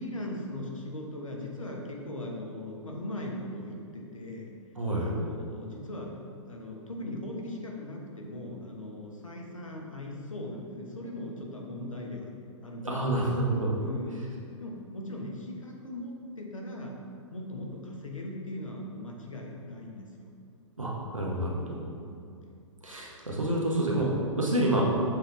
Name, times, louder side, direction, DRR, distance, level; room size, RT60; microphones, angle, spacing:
voice 1, 0.0-4.5 4.9-6.1 6.5-12.3 12.6-13.3 13.8-14.3 14.6-17.0 17.3-20.3 21.9-22.2, left 1 dB, 85° left, -1 dB, 1.2 m, -39 dB
voice 2, 4.8-5.1 12.8-13.7 20.8-21.8 22.8-24.8, right 1 dB, 90° right, -3 dB, 1.2 m, -28 dB
7.2 x 4.0 x 3.4 m, 2.4 s
figure-of-eight pair, 115°, 16 cm